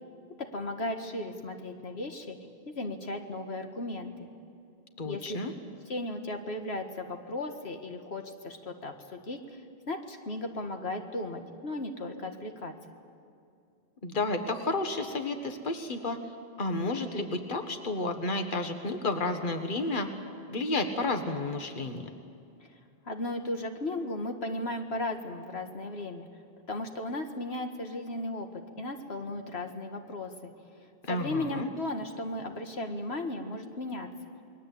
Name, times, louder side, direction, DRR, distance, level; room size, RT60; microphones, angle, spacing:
voice 1, 0.5-2.4 2.7-4.3 5.0-5.4 5.9-9.6 9.9-12.7 22.6-22.8 23.0-26.3 26.7-30.5 31.1-34.1, left 2 dB, 80° left, 5 dB, 2.0 m, -36 dB
voice 2, 5.0-5.5 14.0-16.2 16.6-20.1 20.5-22.1 31.0-31.7, left 2 dB, 50° left, 6 dB, 1.8 m, -31 dB
29.0 x 21.5 x 8.6 m, 2.5 s
omnidirectional pair, 1.1 m